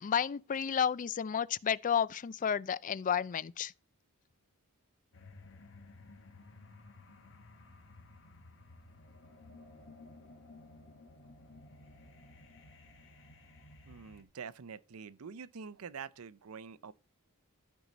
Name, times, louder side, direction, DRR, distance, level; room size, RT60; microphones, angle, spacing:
voice 1, 0.0-3.7, left 8 dB, 35° left, 0.4 m, -31 dB
sound 1, 5.1-14.2, left 2 dB, 60° left, 1.9 m, -55 dB
voice 2, 13.9-16.9, right 6 dB, 70° right, 0.6 m, -46 dB
14.0 x 4.7 x 4.0 m
head